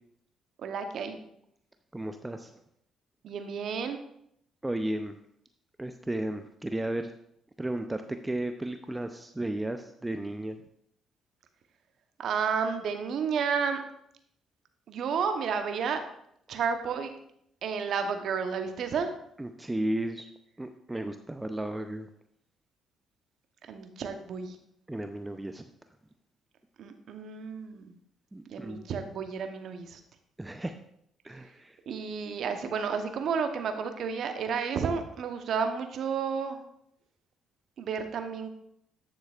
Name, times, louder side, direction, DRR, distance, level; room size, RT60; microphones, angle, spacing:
voice 1, 0.6-1.2 3.2-4.0 12.2-13.8 14.9-16.0 16.5-17.1 17.6-19.1 23.7-24.6 26.8-28.0 28.5-30.0 31.9-36.6 37.8-38.5, right 6 dB, 60° right, 7 dB, 0.9 m, -31 dB
voice 2, 1.9-2.5 4.6-5.2 5.8-7.1 7.6-10.6 19.4-20.3 20.6-22.1 24.9-25.6 28.3-28.8 30.4-30.8 31.2-31.8, right 1 dB, 15° right, 8 dB, 0.6 m, -34 dB
9.5 x 7.2 x 2.4 m, 0.73 s
hypercardioid pair, 50°, 0 cm